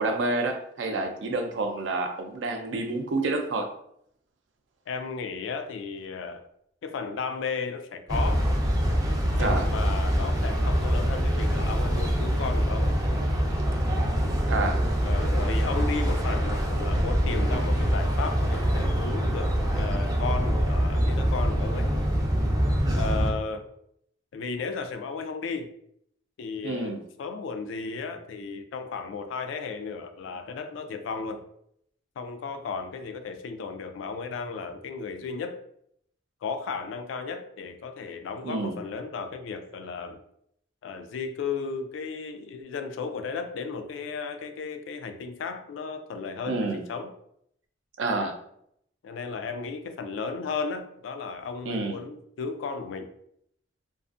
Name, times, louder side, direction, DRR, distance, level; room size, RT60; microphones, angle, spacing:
voice 1, 0.0-3.7 9.4-9.7 14.5-14.9 26.6-27.0 38.4-38.8 46.5-46.8 48.0-48.4 51.6-52.0, right 3 dB, 80° right, 4 dB, 0.4 m, -28 dB
voice 2, 4.9-6.5 6.8-8.5 9.3-13.0 15.1-21.9 22.9-23.7 24.3-25.7 26.4-31.4 32.2-35.6 36.4-40.2 40.8-47.1 48.2-48.3 49.0-53.1, left 4 dB, 85° left, 9 dB, 0.3 m, -34 dB
sound 1, 8.1-23.3, equal, 20° right, 0.4 m, -25 dB
2.5 x 2.4 x 2.4 m, 0.72 s
head